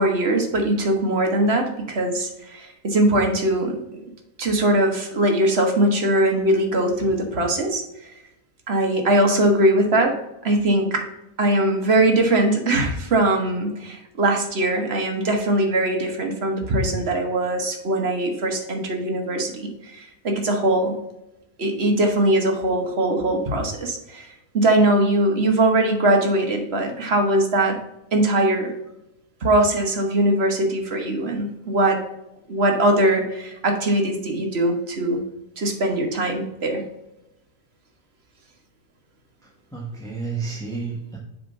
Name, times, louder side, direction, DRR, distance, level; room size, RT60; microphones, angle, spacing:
voice 1, 0.0-4.0 4.4-8.1 8.7-11.0 11.4-21.0 21.6-27.8 28.1-28.7 29.4-32.0 32.5-35.2 35.6-36.8, right 1 dB, 45° right, 3 dB, 1.3 m, -21 dB
voice 2, 39.4-41.2, right 4 dB, 5° left, -2 dB, 0.9 m, -31 dB
7.0 x 3.5 x 5.2 m, 0.87 s
omnidirectional pair, 1.6 m